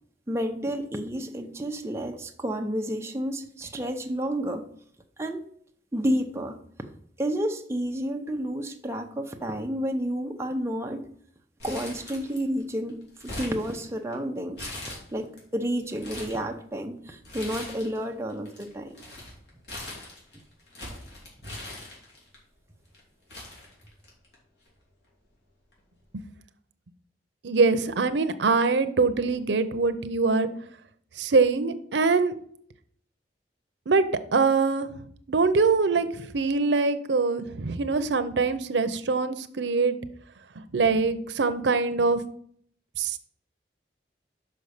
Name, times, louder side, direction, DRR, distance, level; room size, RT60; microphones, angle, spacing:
voice 1, 0.3-4.6 5.2-5.5 5.9-6.6 7.2-11.1 11.6-19.0, equal, 15° right, 3 dB, 0.7 m, -30 dB
Crumpling crinkling, 11.6-12.6 12.9-14.1 14.6-15.4 15.8-16.4 17.2-18.0 18.3-22.4 22.9-23.0 23.3-24.3 24.7-24.8 25.7-26.0, left 1 dB, 80° left, 2.9 m, -40 dB
voice 2, 27.4-30.5 31.2-32.4 33.9-34.0 34.3-34.9 35.3-39.9 40.7-42.2 43.0-43.2, right 4 dB, 90° right, 10 dB, 0.6 m, -23 dB
5.9 x 5.3 x 6.5 m, 0.63 s
head